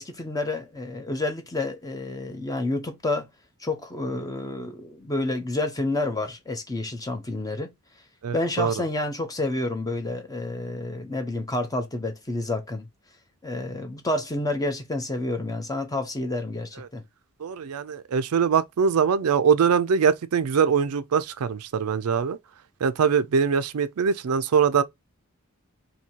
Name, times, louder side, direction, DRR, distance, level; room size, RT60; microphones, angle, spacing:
voice 1, 0.0-3.3 3.6-7.7 8.3-12.9 13.4-17.0, left 2 dB, 15° left, 0.7 m, -29 dB
voice 2, 8.2-8.7 17.4-22.4 22.8-24.8, right 6 dB, 85° right, 0.4 m, -22 dB
2.8 x 2.8 x 4.4 m
head